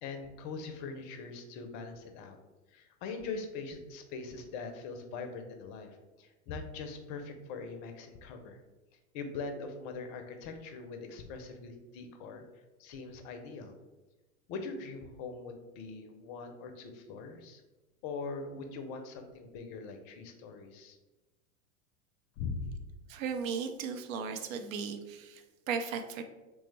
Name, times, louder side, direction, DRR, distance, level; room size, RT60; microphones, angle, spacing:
voice 1, 0.0-2.4 2.7-8.6 9.1-12.4 12.8-13.7 14.5-17.6 18.0-21.0 22.4-22.8, left 4 dB, 40° left, 6 dB, 0.5 m, -42 dB
voice 2, 23.1-26.2, right 6 dB, 65° right, 7 dB, 0.6 m, -36 dB
3.2 x 2.0 x 3.2 m, 1.1 s
hypercardioid pair, 95°, 43 cm